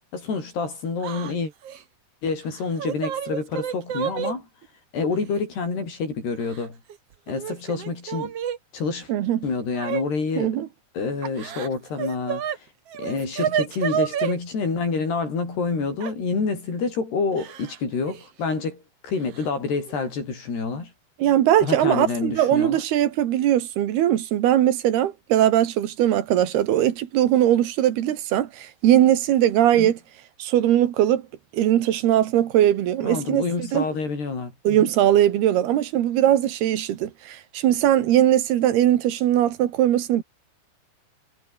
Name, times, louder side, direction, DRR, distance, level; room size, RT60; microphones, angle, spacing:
voice 1, 0.1-1.5 2.2-4.5 4.9-6.8 7.3-8.3 8.7-9.1 9.4-10.6 10.9-12.4 13.0-18.8 19.0-20.9 21.6-22.8 29.7-29.9 33.0-34.9, left 4 dB, 75° left, 9.8 m, -27 dB
Yell / Crying sobbing, 1.0-1.3 1.6-1.8 2.5-4.3 5.3-5.4 6.4-7.0 7.3-8.6 9.7-10.0 11.2-12.6 12.9-14.3 16.0-16.1 17.4-17.8 18.1-18.2 19.3-19.5 19.9-20.2, right 9 dB, 50° right, 2.1 m, -29 dB
voice 2, 9.1-9.5 10.4-10.7 21.2-30.0 30.4-31.3 31.5-33.4 33.7-33.9 34.7-40.2, right 12 dB, 75° right, 3.5 m, -20 dB
omnidirectional pair, 4.7 m